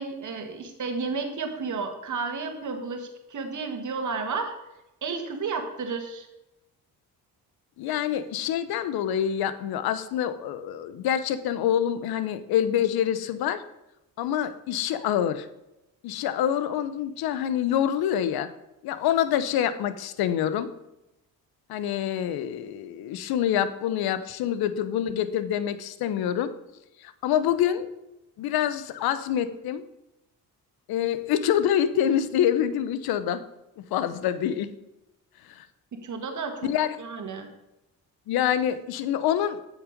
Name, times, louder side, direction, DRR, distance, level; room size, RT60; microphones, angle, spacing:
voice 1, 0.0-4.5 5.0-6.3 36.0-36.7 37.0-37.5, right 4 dB, 50° right, 5 dB, 1.7 m, -32 dB
voice 2, 7.8-13.6 14.2-15.5 16.0-18.5 18.8-20.7 21.7-26.5 27.0-27.9 28.4-29.8 30.9-33.4 33.8-34.7 35.6-35.7 36.6-37.0 38.3-39.6, left 10 dB, 75° left, 13 dB, 0.8 m, -26 dB
8.1 x 6.2 x 5.1 m, 0.91 s
supercardioid pair, 70°, 37 cm